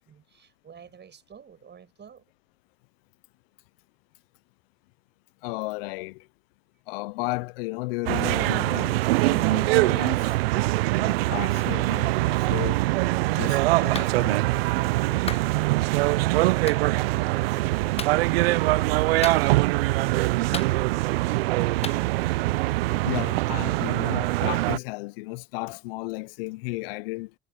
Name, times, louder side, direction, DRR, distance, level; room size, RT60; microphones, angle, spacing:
voice 1, 0.0-2.2, right 7 dB, 35° right, 7.0 m, -49 dB
voice 2, 5.4-6.3 6.9-10.4 11.0-12.8 13.3-15.2 23.0-27.3, left 23 dB, 75° left, 0.6 m, -34 dB
sound 1, 8.1-24.8, right 20 dB, 80° right, 0.5 m, -23 dB
sound 2, 9.3-24.3, right 16 dB, 60° right, 1.9 m, -42 dB
Clapping, 13.9-14.1 15.3-15.5 16.7-16.8 18.0-18.2 19.2-19.7 20.5-21.1 21.8-22.0, left 6 dB, 20° left, 0.7 m, -35 dB
hypercardioid pair, 70°, 29 cm